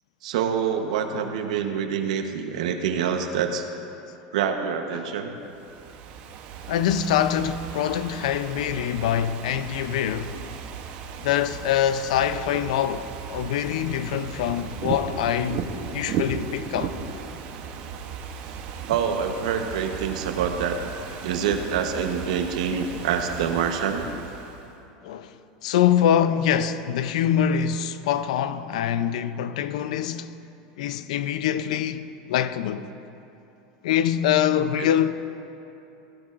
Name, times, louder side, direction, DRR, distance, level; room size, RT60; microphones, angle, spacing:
voice 1, 0.2-3.7 4.3-5.4 10.3-10.4 18.9-20.8 21.2-24.1 34.8-34.9, right 7 dB, 90° right, 1.0 m, -26 dB
Ocean / Fireworks, 5.5-24.7, right 6 dB, 45° right, 0.9 m, -36 dB
voice 2, 6.7-10.3 11.2-16.9 25.0-25.3 25.6-30.3 30.8-32.9 33.8-35.1, left 9 dB, 85° left, 0.5 m, -24 dB
16.0 x 12.0 x 2.5 m
supercardioid pair, 155°, 4 cm